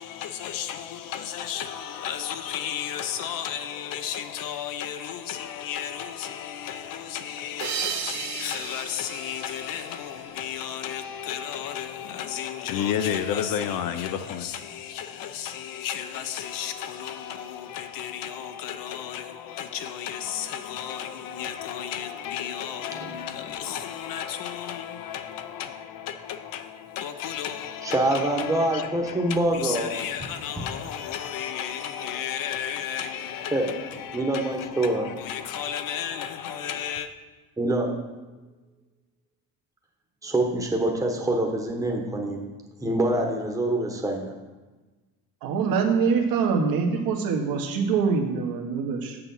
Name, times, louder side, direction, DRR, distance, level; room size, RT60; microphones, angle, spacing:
voice 1, 0.0-37.1, left 9 dB, 60° left, 0.7 m, -33 dB
sound 1, 7.6-10.7, right 8 dB, 50° right, 0.8 m, -35 dB
voice 2, 27.8-30.0 30.6-30.7 33.5-33.7 34.1-35.1 37.6-37.9 40.2-42.5 42.8-44.4, right 1 dB, 10° right, 1.0 m, -25 dB
voice 3, 45.4-49.2, right 5 dB, 65° right, 1.4 m, -24 dB
7.0 x 6.8 x 5.5 m
cardioid pair, 150°, 38 cm